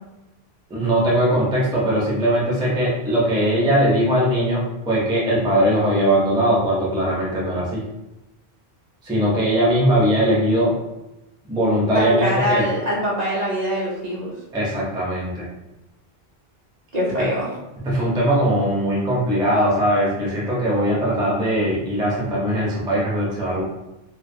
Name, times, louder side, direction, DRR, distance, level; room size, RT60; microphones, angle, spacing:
voice 1, 0.7-7.8 9.0-10.7 11.5-12.6 14.5-15.5 17.2-17.3 17.8-23.6, equal, 5° right, -6 dB, 0.4 m, -20 dB
voice 2, 11.9-14.3 16.9-17.5, equal, 50° right, -6 dB, 0.6 m, -23 dB
2.3 x 2.3 x 2.6 m, 0.97 s
omnidirectional pair, 1.1 m